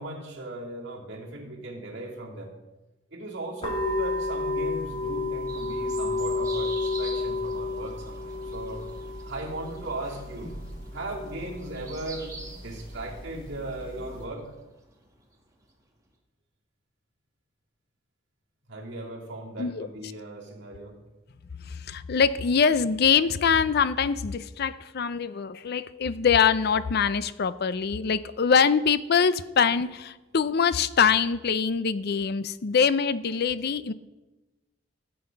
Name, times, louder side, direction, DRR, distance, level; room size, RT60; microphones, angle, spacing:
voice 1, 0.0-2.5 3.1-8.9 9.3-10.5 10.9-14.5 18.7-21.0, right 1 dB, 65° right, -3 dB, 2.7 m, -37 dB
sound 1, 3.6-14.2, left 3 dB, 30° left, 2.6 m, -32 dB
sound 2, 5.5-15.7, right 2 dB, 20° right, 1.8 m, -46 dB
voice 2, 21.7-33.9, left 6 dB, 55° left, 15 dB, 0.5 m, -24 dB
13.5 x 7.9 x 5.3 m, 1.1 s
head